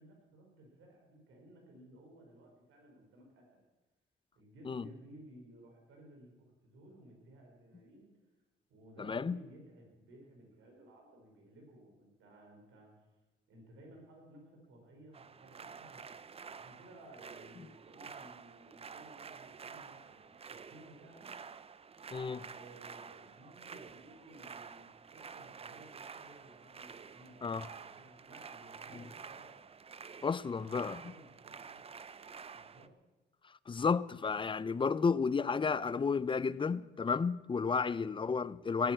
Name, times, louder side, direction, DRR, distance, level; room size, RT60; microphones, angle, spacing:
voice 1, 0.0-3.6 4.4-6.3 6.6-8.1 8.7-12.9 13.5-16.0 16.5-21.3 22.5-29.5 30.8-31.8 32.5-32.9 38.1-38.4, right 1 dB, 80° right, 5.7 m, -57 dB
voice 2, 9.0-9.4 22.1-22.4 27.4-27.7 28.9-29.0 30.2-31.1 33.7-38.9, left 5 dB, 25° left, 0.5 m, -32 dB
sound 1, 15.1-32.9, right 6 dB, 30° right, 0.6 m, -50 dB
18.0 x 9.0 x 7.9 m
cardioid pair, 90°, 20 cm